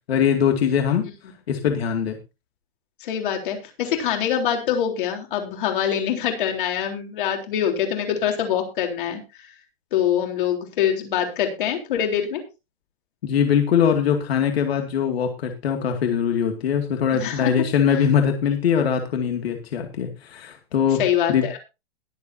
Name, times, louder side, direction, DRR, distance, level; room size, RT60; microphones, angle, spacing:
voice 1, 0.1-1.1 1.5-2.2 13.2-21.0 21.3-21.5, left 7 dB, 75° left, 4 dB, 2.4 m, -22 dB
voice 2, 3.0-9.2 9.9-12.4 17.2-17.5 21.0-21.6, left 9 dB, 55° left, 3 dB, 3.8 m, -24 dB
21.5 x 7.7 x 2.8 m, 0.28 s
hypercardioid pair, 165°, 31 cm